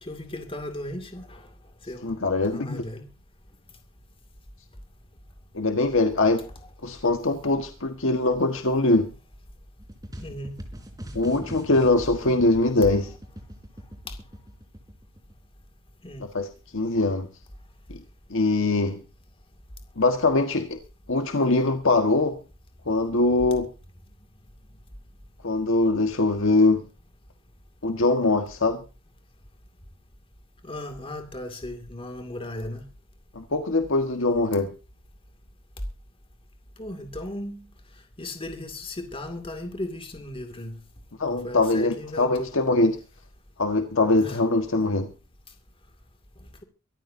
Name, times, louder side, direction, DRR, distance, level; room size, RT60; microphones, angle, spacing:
voice 1, 0.0-1.5 1.8-2.1 2.4-3.0 10.2-10.5 14.1-14.2 16.0-16.2 30.6-32.8 36.8-37.7 38.2-40.8 41.3-42.5 44.2-44.4, left 1 dB, 25° left, 2.4 m, -36 dB
voice 2, 2.0-2.8 5.5-6.4 6.8-9.1 11.1-13.1 16.3-16.5 16.7-17.3 18.3-19.0 20.0-20.8 21.1-22.4 22.8-23.7 25.4-26.8 27.8-28.8 33.3-34.7 41.2-43.0 43.6-45.1, left 2 dB, 65° left, 1.6 m, -22 dB
sound 1, 9.8-15.5, equal, 20° right, 4.0 m, -41 dB
24.0 x 14.0 x 2.7 m
head